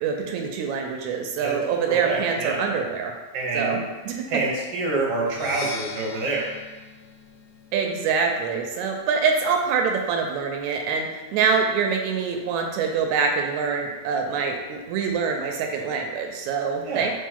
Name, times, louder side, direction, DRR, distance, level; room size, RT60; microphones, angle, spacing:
voice 1, 0.0-3.1 3.5-3.8 4.1-4.3 7.7-17.1, right 5 dB, 85° right, 3 dB, 1.9 m, -25 dB
voice 2, 1.9-2.6 3.3-3.8 4.3-6.5 16.8-17.1, right 3 dB, 60° right, -3 dB, 1.1 m, -26 dB
Percussion, 5.3-9.0, left 6 dB, 80° left, 1.7 m, -42 dB
4.2 x 3.5 x 3.6 m, 1.2 s
omnidirectional pair, 3.3 m